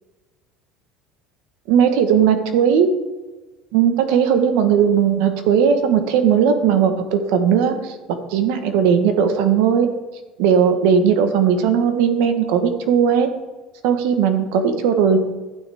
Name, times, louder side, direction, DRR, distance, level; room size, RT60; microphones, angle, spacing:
voice 1, 1.7-2.9 3.7-9.9 10.4-13.3 13.8-15.2, right 7 dB, 80° right, 8 dB, 1.3 m, -17 dB
12.5 x 9.5 x 3.6 m, 1.2 s
cardioid pair, 155°, 0 cm